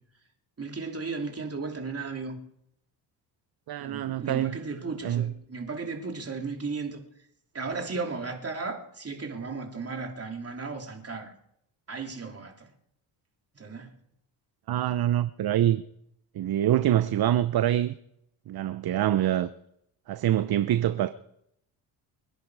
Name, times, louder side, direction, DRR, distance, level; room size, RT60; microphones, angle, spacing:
voice 1, 0.6-2.4 3.8-7.0 7.5-11.3 11.9-12.7 13.5-13.9, right 4 dB, 30° right, 3.2 m, -35 dB
voice 2, 3.7-4.5 5.0-5.3 14.7-15.8 16.3-17.9 18.5-19.5 20.1-21.1, right 12 dB, 50° right, 0.8 m, -25 dB
25.0 x 10.5 x 4.8 m
supercardioid pair, 75°, 47 cm